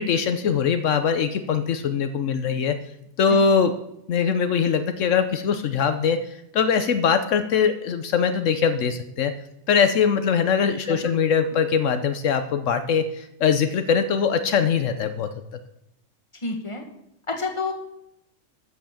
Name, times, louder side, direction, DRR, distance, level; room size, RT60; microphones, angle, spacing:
voice 1, 0.0-2.8 3.2-3.7 4.1-6.2 6.5-9.3 9.7-15.3, left 6 dB, 75° left, 9 dB, 1.1 m, -22 dB
voice 2, 3.3-3.7 10.8-11.1 16.4-16.8 17.3-17.7, left 3 dB, 25° left, 3 dB, 1.7 m, -29 dB
14.0 x 5.8 x 7.1 m, 0.82 s
omnidirectional pair, 1.3 m